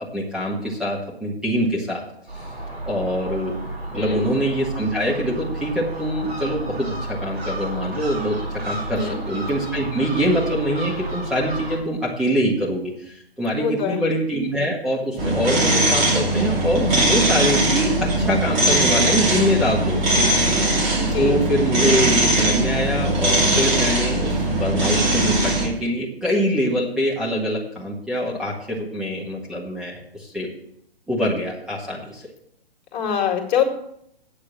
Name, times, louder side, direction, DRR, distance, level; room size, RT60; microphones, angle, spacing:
voice 1, 0.1-2.0 2.9-3.5 3.9-8.4 8.7-20.2 21.2-30.5 31.1-32.2, equal, ahead, -5 dB, 1.7 m, -24 dB
Gull seagull, 2.3-11.8, right 1 dB, 85° right, 4.4 m, -31 dB
voice 2, 13.5-14.0 21.0-21.4 32.9-33.6, left 8 dB, 45° left, 2 dB, 2.3 m, -24 dB
sound 1, 15.2-25.7, right 1 dB, 25° right, 2.7 m, -20 dB
8.8 x 6.6 x 7.5 m, 0.71 s
hypercardioid pair, 140°, 31 cm